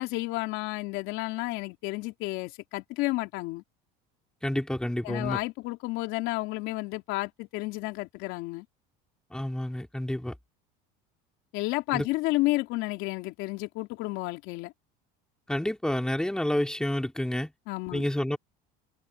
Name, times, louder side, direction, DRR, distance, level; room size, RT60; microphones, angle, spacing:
voice 1, 0.0-3.6 5.0-8.6 11.5-14.7 17.7-18.0, left 20 dB, 65° left, 3.0 m, -31 dB
voice 2, 4.4-5.4 9.3-10.3 11.9-12.1 15.5-17.5 17.9-18.4, left 1 dB, 5° left, 3.5 m, -29 dB
supercardioid pair, 100°, 21 cm